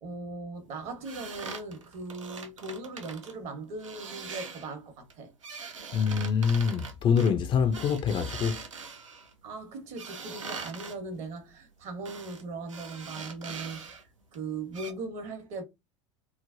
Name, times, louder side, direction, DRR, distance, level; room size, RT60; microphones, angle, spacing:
voice 1, 0.0-5.3 9.4-13.9 14.3-15.6, right 3 dB, 45° right, 1.1 m, -39 dB
sound 1, 1.0-3.3 3.8-4.7 5.1-9.3 10.0-11.0 12.1-12.4 12.7-14.0 14.3-14.4 14.7-14.9, right 5 dB, 80° right, 0.6 m, -42 dB
voice 2, 5.9-8.6, left 6 dB, 30° left, 0.4 m, -25 dB
3.1 x 2.1 x 2.5 m
figure-of-eight pair, 85°, 16 cm